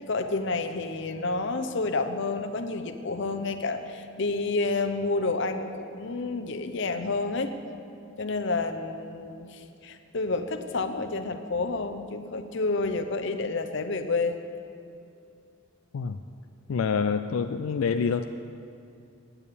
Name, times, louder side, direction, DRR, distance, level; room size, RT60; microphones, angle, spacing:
voice 1, 0.1-7.5 8.2-14.4, left 3 dB, 60° left, 8 dB, 0.8 m, -29 dB
voice 2, 16.7-18.2, left 5 dB, 90° left, 8 dB, 0.4 m, -26 dB
8.9 x 8.8 x 8.4 m, 2.6 s
head